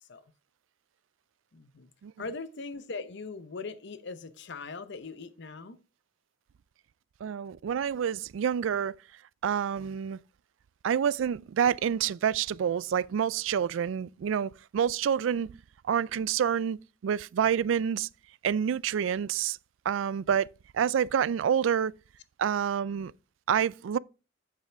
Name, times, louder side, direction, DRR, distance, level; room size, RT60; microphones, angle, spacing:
voice 1, 1.5-1.9 2.2-5.8, left 4 dB, 65° left, 0.8 m, -40 dB
voice 2, 7.2-9.0 9.4-10.2 10.8-15.5 15.9-18.1 18.4-19.6 19.9-20.5 20.7-21.9 22.4-23.1 23.5-24.0, right 8 dB, 75° right, 0.3 m, -28 dB
8.5 x 7.3 x 3.4 m
head